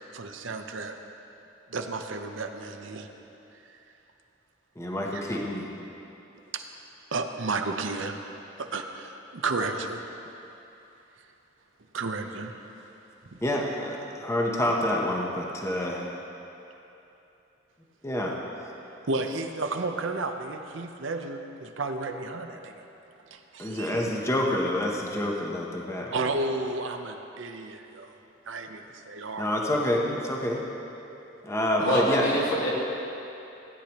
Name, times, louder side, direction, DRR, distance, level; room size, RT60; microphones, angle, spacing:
voice 1, 0.1-0.9 1.7-3.1 5.1-5.4 6.5-6.6 7.1-8.2 8.6-10.0 11.9-12.6 13.3-13.4 19.1-22.8 23.3-24.1 26.1-28.2 28.5-29.5 31.8-32.1, right 3 dB, 70° right, 5 dB, 0.7 m, -32 dB
voice 2, 4.8-5.7 13.4-16.1 18.0-18.4 23.6-26.2 29.4-30.6 31.4-32.2, left 1 dB, 15° left, -2 dB, 0.9 m, -28 dB
voice 3, 31.8-32.7, equal, 80° left, -7 dB, 2.8 m, -25 dB
16.0 x 9.9 x 3.0 m, 2.9 s
head